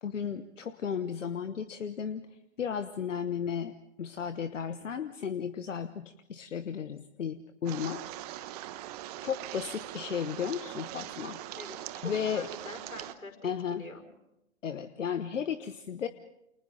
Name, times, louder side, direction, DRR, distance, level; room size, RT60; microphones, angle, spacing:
voice 1, 0.0-2.3 2.6-8.0 9.2-11.4 12.0-12.5 13.4-13.8 14.6-16.1, left 7 dB, 60° left, 11 dB, 1.2 m, -34 dB
sound 1, 7.7-13.1, right 14 dB, 30° right, 1.1 m, -41 dB
voice 2, 11.5-14.1, left 2 dB, 85° left, 5 dB, 5.5 m, -45 dB
30.0 x 28.5 x 3.8 m, 0.85 s
figure-of-eight pair, 120°, 41 cm